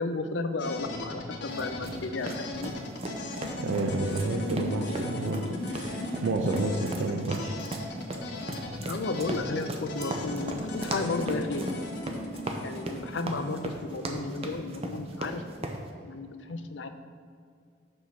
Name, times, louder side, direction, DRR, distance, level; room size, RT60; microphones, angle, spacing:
voice 1, 0.0-2.7 8.9-11.7 12.6-15.4 16.0-16.9, left 3 dB, 80° left, 8 dB, 0.5 m, -33 dB
sound 1, 0.6-14.5, left 1 dB, 60° left, 0.9 m, -37 dB
sound 2, 1.5-15.8, right 1 dB, 35° right, 0.6 m, -38 dB
voice 2, 3.6-7.5, right 2 dB, 90° right, 1 dB, 0.5 m, -30 dB
6.2 x 5.6 x 4.7 m, 2.3 s
head